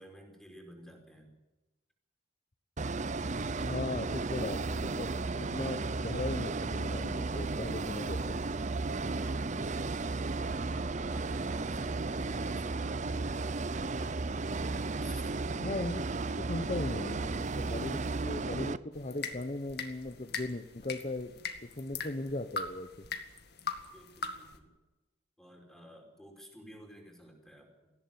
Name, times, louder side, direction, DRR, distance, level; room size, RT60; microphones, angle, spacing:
voice 1, 0.0-1.3 10.4-13.6 15.0-15.4 23.9-24.7 25.4-27.9, equal, ahead, 2 dB, 4.9 m, -53 dB
sound 1, 2.8-18.8, right 3 dB, 40° right, 0.7 m, -34 dB
voice 2, 3.6-8.4 15.6-16.1 16.4-23.1, left 2 dB, 35° left, 9 dB, 1.0 m, -38 dB
sound 2, 18.9-24.6, left 5 dB, 55° left, 2.1 m, -41 dB
18.5 x 16.0 x 9.4 m, 1.1 s
head